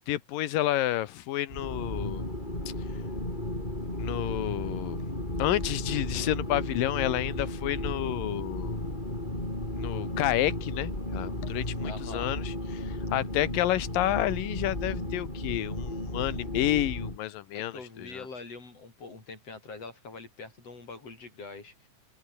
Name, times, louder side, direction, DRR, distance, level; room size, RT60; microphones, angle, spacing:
voice 1, 0.0-2.3 4.0-5.1 5.4-8.8 9.8-18.3, left 14 dB, 75° left, 2.8 m, -30 dB
sound 1, 1.5-17.2, left 1 dB, 10° left, 6.2 m, -34 dB
voice 2, 11.8-12.3 17.5-21.9, left 3 dB, 45° left, 6.6 m, -44 dB
open air
omnidirectional pair, 4.1 m